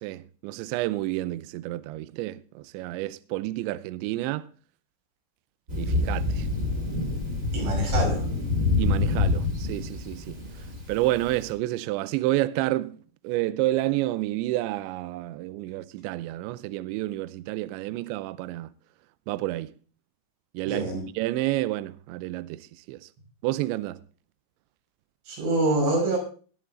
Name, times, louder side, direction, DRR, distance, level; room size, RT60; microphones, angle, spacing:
voice 1, 0.0-4.5 5.7-6.5 8.8-10.3 10.9-13.0 13.2-18.7 19.3-19.7 20.5-20.9 21.2-23.1 23.4-24.0, right 16 dB, 85° right, 2.6 m, -29 dB
Thunder, 5.7-11.4, left 3 dB, 20° right, 2.7 m, -26 dB
voice 2, 7.5-8.2 20.7-21.1 25.3-26.2, right 2 dB, 65° right, 8.1 m, -25 dB
21.0 x 7.2 x 3.7 m
omnidirectional pair, 6.0 m